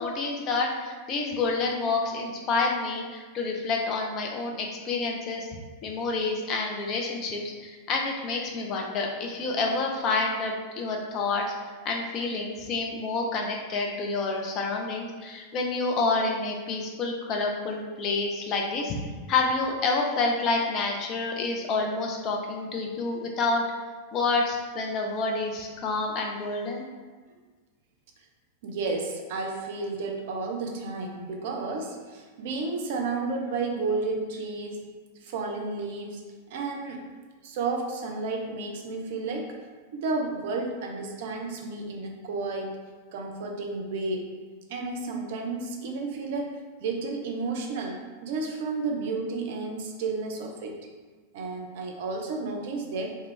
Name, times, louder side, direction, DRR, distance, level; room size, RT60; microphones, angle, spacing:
voice 1, 0.0-5.5 5.8-11.4 11.8-19.0 19.3-23.6 24.1-26.8, left 3 dB, 35° left, 0 dB, 0.5 m, -28 dB
voice 2, 28.6-34.9 35.2-37.0 37.4-39.6 39.9-42.8 43.1-44.3 44.7-50.8 51.3-53.2, right 3 dB, 50° right, 2 dB, 0.4 m, -32 dB
2.3 x 2.1 x 3.7 m, 1.4 s
figure-of-eight pair, 90°, 0 cm